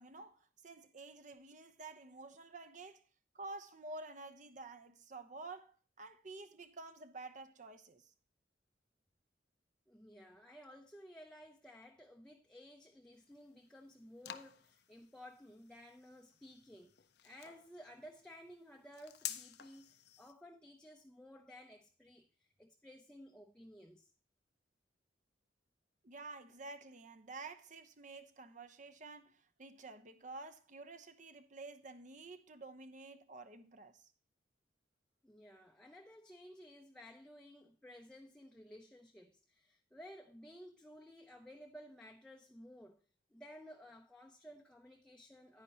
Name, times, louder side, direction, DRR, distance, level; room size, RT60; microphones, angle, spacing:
voice 1, 0.0-3.0 3.3-8.1 26.0-34.1, right 3 dB, 45° right, 0.8 m, -50 dB
voice 2, 9.9-24.1 35.2-43.0 43.3-45.6, equal, 5° left, 0.6 m, -56 dB
sound 1, 13.1-20.3, left 11 dB, 60° left, 0.7 m, -51 dB
9.8 x 9.8 x 2.9 m
head